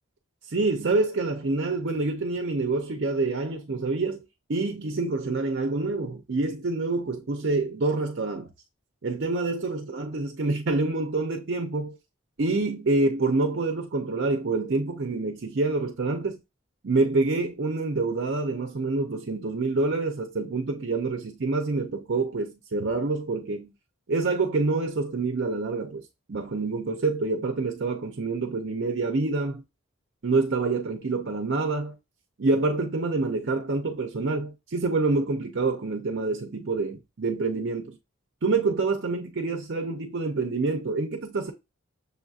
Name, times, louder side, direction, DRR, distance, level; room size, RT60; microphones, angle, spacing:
voice 1, 0.4-4.2 4.5-8.5 9.0-12.0 12.4-16.4 16.8-23.7 24.1-29.6 30.2-32.0 32.4-38.0 38.4-41.5, right 3 dB, 55° right, 0.5 m, -27 dB
6.7 x 2.7 x 2.4 m
head